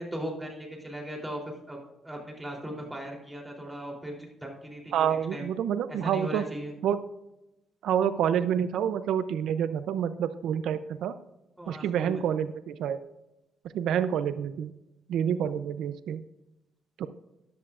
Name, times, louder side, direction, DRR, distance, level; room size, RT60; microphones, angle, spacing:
voice 1, 0.0-1.8 2.0-5.5 5.9-6.7 11.6-12.2, equal, 10° right, 0 dB, 3.3 m, -38 dB
voice 2, 4.9-6.5 6.8-7.0 7.8-11.1 11.7-13.0 13.7-14.7 15.1-16.2 17.0-17.1, right 9 dB, 80° right, 12 dB, 0.5 m, -28 dB
14.0 x 10.5 x 2.5 m, 0.94 s
cardioid pair, 90°, 0 cm